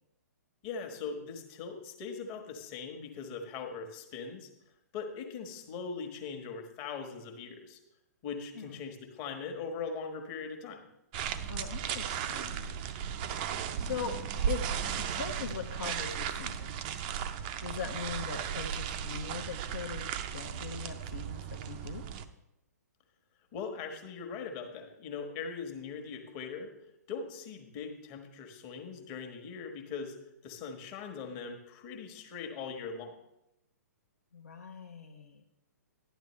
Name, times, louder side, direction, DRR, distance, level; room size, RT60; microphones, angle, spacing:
voice 1, 0.6-4.5 4.9-7.8 8.2-10.8 23.5-26.7 27.1-30.1 30.4-33.2, left 5 dB, 30° left, 4 dB, 1.3 m, -40 dB
sound 1, 11.1-22.2, right 8 dB, 30° right, 0.5 m, -36 dB
voice 2, 11.5-12.8 13.7-14.1 14.5-17.0 17.6-22.0 34.3-35.4, left 6 dB, 60° left, 3 dB, 0.9 m, -41 dB
12.0 x 10.0 x 3.1 m, 0.86 s
figure-of-eight pair, 120°, 9 cm